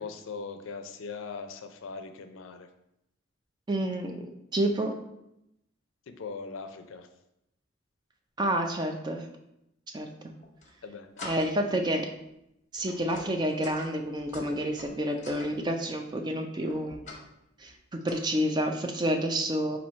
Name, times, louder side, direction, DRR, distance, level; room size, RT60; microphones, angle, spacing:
voice 1, 0.0-2.7 6.2-7.1 10.8-11.4, left 4 dB, 75° left, 8 dB, 0.4 m, -40 dB
voice 2, 3.7-4.2 4.5-4.9 8.4-9.3 9.9-10.1 11.2-12.1 12.7-17.0 17.6-17.7 18.0-19.8, right 1 dB, 20° right, 4 dB, 0.4 m, -29 dB
sound 1, 10.3-10.7 11.2-11.7 12.1-12.3 12.8-15.5 16.7-17.3 17.6-18.1, left 2 dB, 35° left, 0.7 m, -46 dB
4.4 x 2.7 x 4.2 m, 0.84 s
head